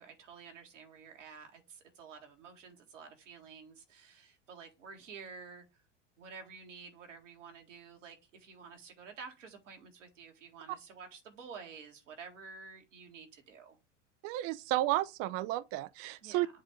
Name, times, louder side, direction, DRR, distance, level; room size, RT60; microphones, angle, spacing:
voice 1, 0.0-5.6 6.2-13.8 16.2-16.5, right 5 dB, 85° right, 1.8 m, -51 dB
voice 2, 14.2-16.5, right 15 dB, 40° right, 0.4 m, -32 dB
7.8 x 2.7 x 5.1 m
hypercardioid pair, 90°, 36 cm